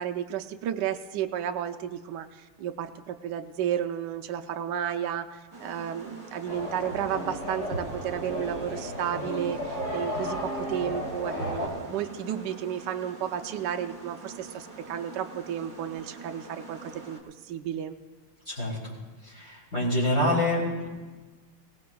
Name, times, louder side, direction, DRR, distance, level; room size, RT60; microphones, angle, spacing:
voice 1, 0.0-18.0, right 9 dB, 70° right, 6 dB, 1.0 m, -32 dB
sound 1, 5.5-17.2, right 2 dB, 25° right, 1.8 m, -45 dB
sound 2, 6.5-11.7, equal, 85° left, 5.4 m, -33 dB
voice 2, 18.5-19.0 19.2-20.9, left 1 dB, 35° left, -7 dB, 3.8 m, -27 dB
24.5 x 18.0 x 2.3 m, 1.3 s
omnidirectional pair, 2.4 m